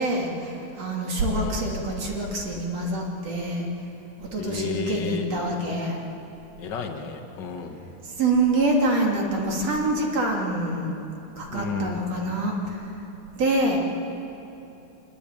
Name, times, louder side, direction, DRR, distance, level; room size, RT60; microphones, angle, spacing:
voice 1, 0.0-3.7 4.2-6.0 8.0-10.9 11.4-12.9 13.3-13.8, right 2 dB, 40° right, -1 dB, 3.5 m, -26 dB
voice 2, 1.3-1.7 4.4-5.2 6.6-7.8 11.5-12.0, left 6 dB, 60° left, 3 dB, 1.1 m, -32 dB
24.0 x 21.5 x 9.0 m, 2.9 s
omnidirectional pair, 4.7 m